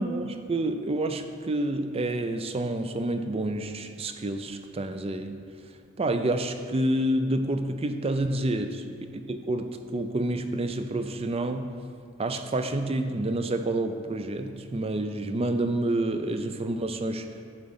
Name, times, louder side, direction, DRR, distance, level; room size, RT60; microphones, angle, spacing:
voice 1, 0.0-5.4 6.0-8.8 9.1-11.7 12.2-17.3, right 1 dB, 30° right, 8 dB, 0.5 m, -28 dB
10.5 x 3.8 x 7.1 m, 2.2 s
head